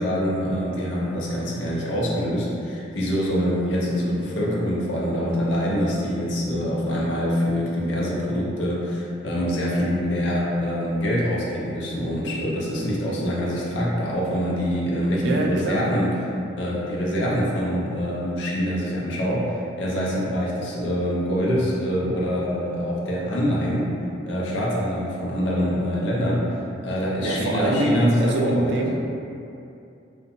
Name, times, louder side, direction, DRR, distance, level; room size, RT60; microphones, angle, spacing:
voice 1, 0.0-16.2 16.6-23.9 24.3-28.7, equal, 70° left, -5 dB, 0.5 m, -25 dB
voice 2, 15.2-15.8 27.2-29.0, right 1 dB, 60° right, -1 dB, 0.3 m, -24 dB
2.7 x 2.1 x 2.6 m, 2.7 s
head